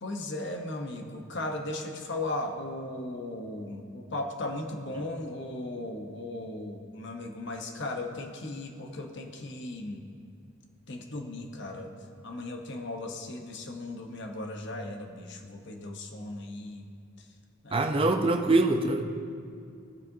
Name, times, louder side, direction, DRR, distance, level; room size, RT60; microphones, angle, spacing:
voice 1, 0.0-10.0 10.9-11.9 12.2-16.9 17.6-17.9, left 2 dB, 55° left, 3 dB, 0.9 m, -37 dB
voice 2, 17.7-19.0, right 2 dB, 25° right, 5 dB, 0.5 m, -24 dB
17.5 x 7.4 x 2.7 m, 2.4 s
head